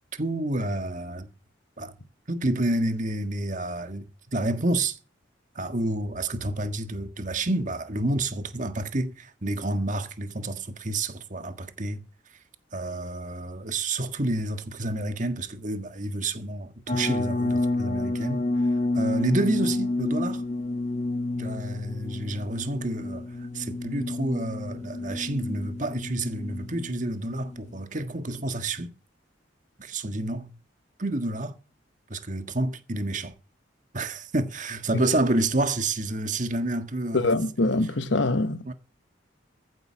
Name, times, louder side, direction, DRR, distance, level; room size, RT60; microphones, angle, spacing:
voice 1, 0.2-1.3 1.8-1.9 2.3-5.0 5.5-12.0 12.7-18.4 18.9-20.4 21.4-28.9 29.8-30.5 31.0-31.5 32.1-33.3 33.9-37.3 38.6-38.7, right 2 dB, 40° right, 1.6 m, -29 dB
sound 1, 16.9-27.8, left 2 dB, 35° left, 1.3 m, -30 dB
voice 2, 37.1-38.6, left 2 dB, 75° left, 1.1 m, -24 dB
15.0 x 8.0 x 6.3 m
head